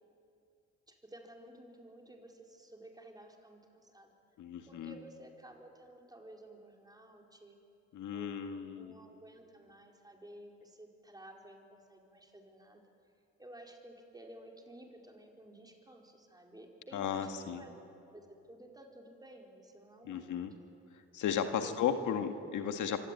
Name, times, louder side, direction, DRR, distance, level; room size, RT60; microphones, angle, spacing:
voice 1, 0.9-4.1 4.7-7.6 8.1-12.8 13.4-17.8 18.1-20.8 21.6-22.0, right 1 dB, 15° right, 1 dB, 4.8 m, -54 dB
voice 2, 4.4-4.9 7.9-9.0 16.9-17.6 20.1-20.5 21.1-23.0, left 8 dB, 80° left, 6 dB, 1.9 m, -35 dB
25.5 x 24.5 x 9.4 m, 2.5 s
cardioid pair, 90°, 30 cm